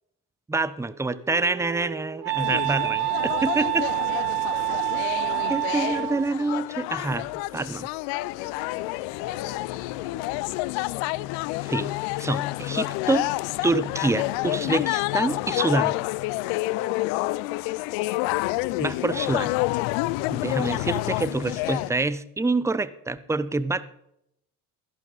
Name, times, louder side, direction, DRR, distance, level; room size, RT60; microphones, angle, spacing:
voice 1, 0.5-3.8 5.5-7.3 7.5-7.9 11.6-13.3 13.6-16.0 18.8-19.6 20.3-23.8, right 3 dB, 5° right, 16 dB, 0.7 m, -26 dB
Wind instrument woodwind instrument, 0.9-6.3, right 25 dB, 80° right, 0.7 m, -28 dB
sound 1, 2.4-21.9, left 20 dB, 65° left, 0.6 m, -29 dB
voice 2, 3.2-4.7 5.1-5.7 7.5-11.0 16.6-17.5, left 6 dB, 40° left, 6 dB, 2.6 m, -44 dB
13.5 x 11.5 x 4.1 m, 0.76 s
hypercardioid pair, 80°, 47 cm